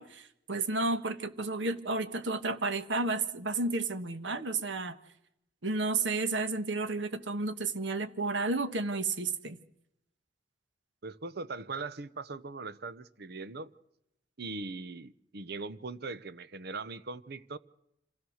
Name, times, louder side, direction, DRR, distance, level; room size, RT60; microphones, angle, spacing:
voice 1, 0.0-5.0 5.6-9.6, right 3 dB, 90° right, 1.4 m, -32 dB
voice 2, 11.0-13.7 14.4-17.6, right 3 dB, 60° right, 0.9 m, -40 dB
26.5 x 16.5 x 6.5 m
head